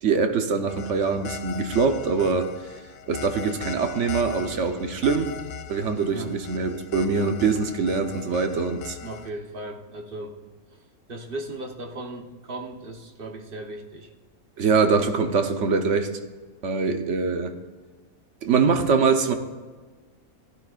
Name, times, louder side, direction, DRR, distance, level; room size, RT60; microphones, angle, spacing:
voice 1, 0.0-2.5 3.1-5.3 5.7-9.0 14.6-16.1 16.6-17.6 18.4-19.3, right 5 dB, 60° right, 7 dB, 1.2 m, -23 dB
sound 1, 0.7-9.3, left 7 dB, 65° left, 0.7 m, -39 dB
voice 2, 9.0-10.4 10.7-10.8 11.1-14.1, right 1 dB, 40° right, 2 dB, 1.2 m, -37 dB
16.5 x 13.0 x 2.5 m, 1.4 s
omnidirectional pair, 1.5 m